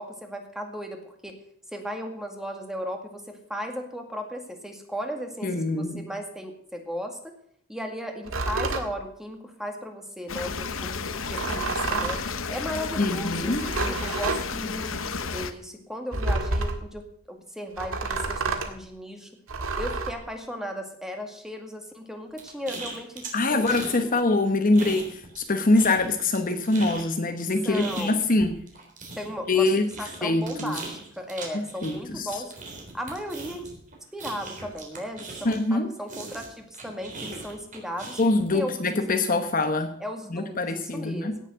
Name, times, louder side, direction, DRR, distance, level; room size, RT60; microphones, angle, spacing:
voice 1, 0.0-1.4 1.7-5.5 5.8-7.3 7.7-11.0 11.3-12.2 12.5-19.3 19.8-23.2 23.5-24.1 27.6-28.3 29.2-29.7 30.0-32.5 32.9-33.7 34.1-38.2 38.5-38.8 40.0-41.5, equal, ahead, 4 dB, 2.0 m, -36 dB
voice 2, 5.4-6.1 13.0-13.6 23.3-28.6 29.5-29.9 30.2-30.7 31.8-32.3 35.4-35.9 38.2-40.0 40.3-41.3, left 2 dB, 45° left, 7 dB, 1.1 m, -24 dB
sound 1, 8.2-8.9 11.2-12.3 13.4-14.4 16.1-16.9 17.8-18.7 19.5-20.1, right 3 dB, 85° right, 1.9 m, -29 dB
sound 2, 10.3-15.5, left 5 dB, 70° left, 1.0 m, -32 dB
sound 3, 22.4-24.0 24.3-25.5 25.8-35.7 36.1-38.5, right 3 dB, 40° right, 3.8 m, -39 dB
17.0 x 7.3 x 6.4 m, 0.65 s
head